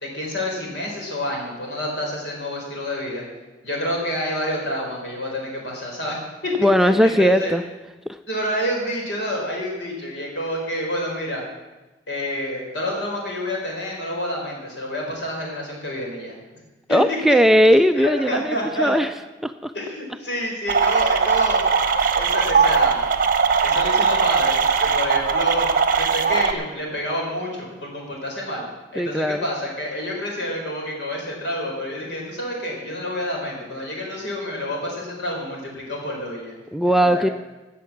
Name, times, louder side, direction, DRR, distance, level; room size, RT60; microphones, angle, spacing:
voice 1, 0.0-3.2 3.6-6.5 6.8-7.5 8.3-11.4 12.1-16.4 16.9-17.2 18.0-18.9 19.7-21.6 22.1-23.0 23.6-25.7 26.0-28.7 28.9-36.5 37.0-37.3, left 1 dB, 70° left, -1 dB, 4.4 m, -28 dB
voice 2, 6.6-7.6 8.1-8.2 16.9-19.1 19.4-19.7 29.0-29.4 36.7-37.3, equal, ahead, 9 dB, 0.3 m, -18 dB
sound 1, 20.7-26.5, right 5 dB, 50° right, 0.9 m, -19 dB
14.5 x 6.7 x 8.5 m, 1.1 s
head